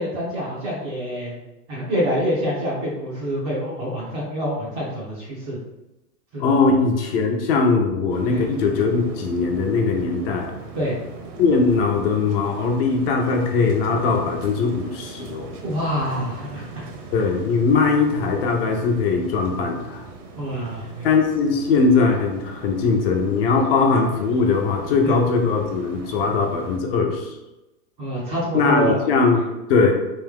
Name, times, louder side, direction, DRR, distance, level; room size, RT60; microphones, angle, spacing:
voice 1, 0.0-1.4 1.7-5.6 6.3-6.5 8.3-8.4 10.7-11.0 15.6-16.7 20.4-21.1 25.0-25.2 28.0-29.0 29.3-29.4, equal, 20° right, -6 dB, 0.4 m, -26 dB
voice 2, 6.4-10.5 11.4-15.5 17.1-20.0 21.0-27.4 28.5-30.0, left 4 dB, 40° left, 2 dB, 0.6 m, -20 dB
sound 1, 8.1-26.8, right 4 dB, 70° right, 1.1 m, -39 dB
3.5 x 2.5 x 3.5 m, 1.0 s
hypercardioid pair, 135°, 48 cm